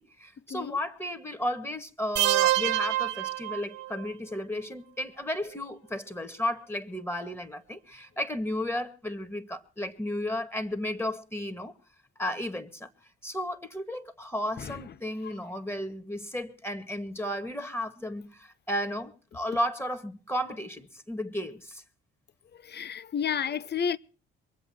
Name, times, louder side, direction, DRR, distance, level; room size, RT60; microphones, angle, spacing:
voice 1, 0.0-11.7 12.2-12.9 13.2-21.8, left 1 dB, 5° left, 2.0 m, -34 dB
sound 1, 2.2-4.1, right 15 dB, 65° right, 0.8 m, -26 dB
voice 2, 22.5-24.0, left 7 dB, 35° left, 0.7 m, -31 dB
24.0 x 8.0 x 5.8 m
hypercardioid pair, 55°, 32 cm